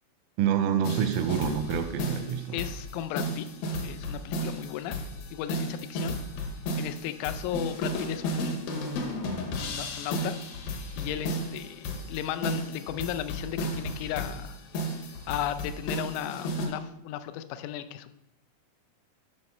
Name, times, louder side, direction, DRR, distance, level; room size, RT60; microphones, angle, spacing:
voice 1, 0.4-2.6, right 8 dB, 85° right, 9 dB, 3.2 m, -27 dB
sound 1, 0.8-16.7, equal, 75° left, 2.3 m, -33 dB
voice 2, 2.5-3.5 3.8-5.0 5.3-6.2 6.8-8.8 9.6-10.3 11.0-14.6 15.3-18.2, left 11 dB, 90° left, 10 dB, 3.2 m, -35 dB
12.5 x 4.3 x 5.3 m, 0.85 s
omnidirectional pair, 5.8 m